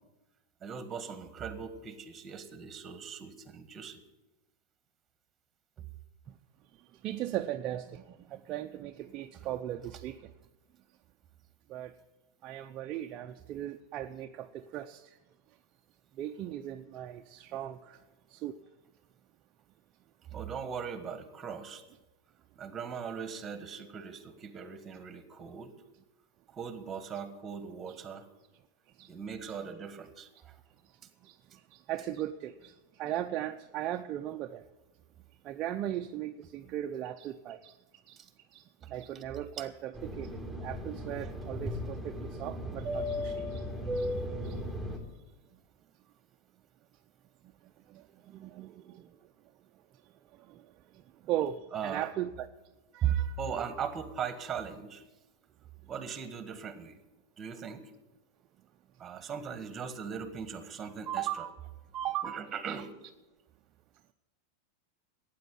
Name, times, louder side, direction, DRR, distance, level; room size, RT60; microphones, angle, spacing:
voice 1, 0.6-4.0 20.3-21.8 22.6-25.7 26.5-28.2 29.1-30.5 38.2-38.3 38.8-38.9 39.1-39.2 39.6-39.7 51.7-52.1 53.0-55.0 55.9-57.0 57.4-57.9 59.0-61.4 62.2-62.9, right 7 dB, 20° right, 10 dB, 1.6 m, -38 dB
voice 2, 7.0-8.0 8.3-10.2 11.7-11.9 12.4-15.0 16.2-18.0 18.3-18.5 29.0-29.1 29.4-29.5 31.2-31.3 31.9-32.7 33.0-34.6 35.4-37.7 38.1-38.2 38.5-40.3 40.6-43.6 44.0-44.1 44.4-44.5 47.9-48.0 48.3-49.1 51.3-52.5 52.9-53.4 61.1-61.5 61.9-62.8, right 12 dB, 40° right, 5 dB, 0.6 m, -37 dB
Fixed-wing aircraft airplane, 39.9-45.0, equal, 10° left, 3.8 m, -36 dB
12.5 x 9.3 x 9.4 m, 1.1 s
supercardioid pair, 135°, 0 cm